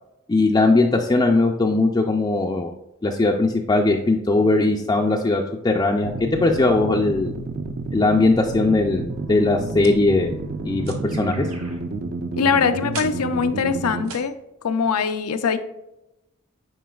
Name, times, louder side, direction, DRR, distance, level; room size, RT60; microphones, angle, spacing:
voice 1, 0.3-2.7 3.0-7.3 7.9-10.4 10.6-11.5, left 2 dB, 20° left, 1 dB, 0.4 m, -19 dB
sound 1, 6.0-14.1, right 2 dB, 45° right, 0.5 m, -30 dB
Keyboard (musical), 9.1-11.8, right 2 dB, 85° right, 2.1 m, -46 dB
sound 2, 9.8-10.2 10.9-11.1 12.9-13.2 14.0-14.3, right 6 dB, 65° right, 0.9 m, -36 dB
voice 2, 12.4-14.3 14.6-15.6, left 5 dB, 90° left, 9 dB, 0.6 m, -22 dB
9.2 x 4.5 x 2.3 m, 0.92 s
head